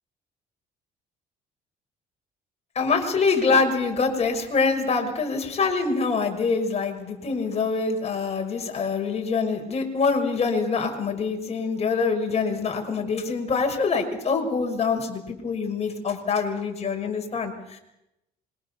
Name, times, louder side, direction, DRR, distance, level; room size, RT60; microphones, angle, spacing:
voice 1, 2.7-17.8, left 4 dB, 40° left, 4 dB, 6.1 m, -25 dB
26.0 x 23.5 x 7.2 m, 0.88 s
cardioid pair, 110°, 17 cm